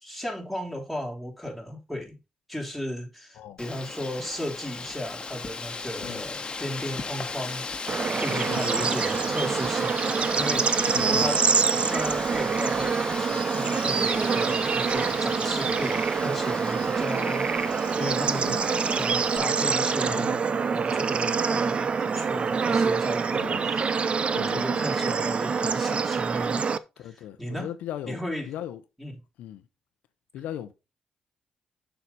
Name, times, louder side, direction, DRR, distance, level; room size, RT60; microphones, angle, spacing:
voice 1, 0.0-2.2 2.5-10.9 11.2-11.4 11.8-20.3 20.7-23.9 24.5-26.6 27.0-27.7 28.0-28.5 29.0-29.2, equal, 5° right, 3.6 m, -35 dB
Wind, 3.6-19.4, left 4 dB, 35° left, 1.3 m, -37 dB
Bird / Insect / Frog, 7.9-26.8, right 5 dB, 45° right, 0.6 m, -25 dB
voice 2, 8.3-8.9 10.9-11.3 18.4-18.6 20.0-20.4 23.4-23.7 24.3-24.8 27.0-28.2 28.5-28.8 29.4-29.7 30.3-30.7, left 11 dB, 85° left, 0.7 m, -38 dB
6.7 x 5.6 x 4.0 m
supercardioid pair, 65°, 3 cm